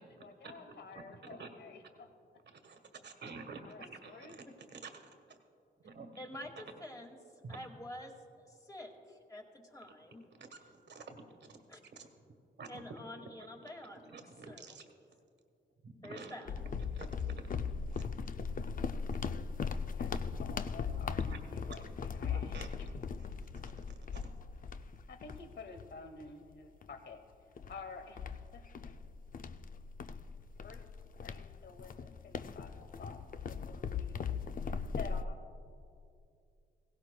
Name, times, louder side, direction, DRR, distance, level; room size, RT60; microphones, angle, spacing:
voice 1, 0.0-2.1 3.6-4.4 19.3-19.5 19.9-20.1 20.4-22.9 25.1-27.2 27.7-28.2 28.5-28.6 30.6-30.8 31.2-33.2 33.5-34.2 34.9-35.4, left 4 dB, 65° left, 7 dB, 1.0 m, -50 dB
voice 2, 2.6-4.4 4.7-4.8 5.3-5.4 5.8-6.1 7.4-7.6 10.4-11.6 12.0-12.1 12.6-12.8 13.2-13.3 13.8-14.8 15.8-16.4 16.9-17.1 17.3-17.6 18.0-18.1 21.2-21.9 22.3-22.7 23.5-24.3, right 4 dB, 65° right, 6 dB, 1.4 m, -50 dB
voice 3, 6.2-7.2 7.5-10.3 11.7-11.8 12.7-14.2 14.5-14.8 16.0-16.5, left 1 dB, 20° left, 2 dB, 1.9 m, -48 dB
sound 1, 16.5-26.3 26.8-27.0 27.6-35.2, left 6 dB, 45° left, 0.5 m, -39 dB
17.0 x 16.5 x 2.3 m, 2.5 s
cardioid pair, 60°, 19 cm